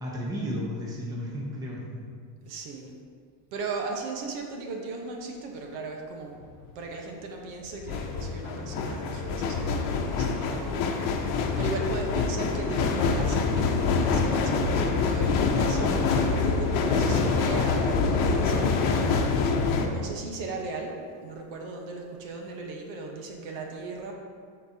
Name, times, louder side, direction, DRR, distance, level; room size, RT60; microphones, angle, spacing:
voice 1, 0.0-2.0, equal, 10° right, -4 dB, 0.8 m, -34 dB
voice 2, 2.4-3.0 3.5-6.4 6.7-19.3 19.8-21.0 21.2-24.1, right 3 dB, 70° right, 1 dB, 1.2 m, -37 dB
sound 1, 6.4-6.7 7.7-19.9, left 4 dB, 65° left, 0.9 m, -25 dB
12.0 x 4.5 x 2.8 m, 2.2 s
cardioid pair, 160°, 47 cm